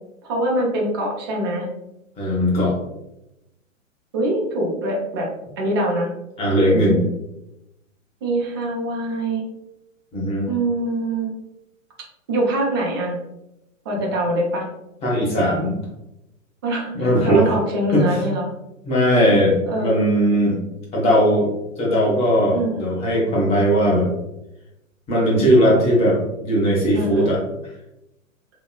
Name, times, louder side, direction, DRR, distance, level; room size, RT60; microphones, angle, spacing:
voice 1, 0.3-1.7 4.1-5.3 5.6-6.1 6.6-7.0 8.2-9.4 10.5-11.3 12.3-13.2 13.9-14.7 16.6-18.5 19.7-20.1 22.5-22.9 26.9-27.3, right 1 dB, 20° right, -2 dB, 0.3 m, -24 dB
voice 2, 2.2-2.7 6.4-7.0 10.1-10.5 15.0-15.7 16.9-17.5 17.9-18.1 18.8-20.6 20.9-21.5 21.8-24.1 25.1-27.4, equal, 15° left, -4 dB, 0.8 m, -18 dB
3.0 x 2.7 x 2.2 m, 0.90 s
figure-of-eight pair, 110°, 40 cm